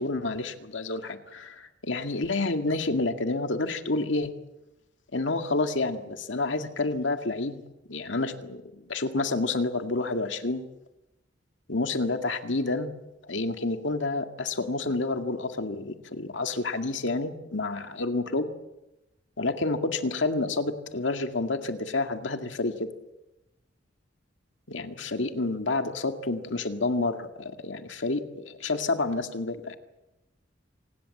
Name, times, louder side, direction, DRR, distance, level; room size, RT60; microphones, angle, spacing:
voice 1, 0.0-4.3 5.1-10.7 11.7-13.0 13.3-18.5 19.4-22.9 24.7-29.8, left 3 dB, 85° left, 6 dB, 2.0 m, -29 dB
26.5 x 19.5 x 7.8 m, 0.96 s
head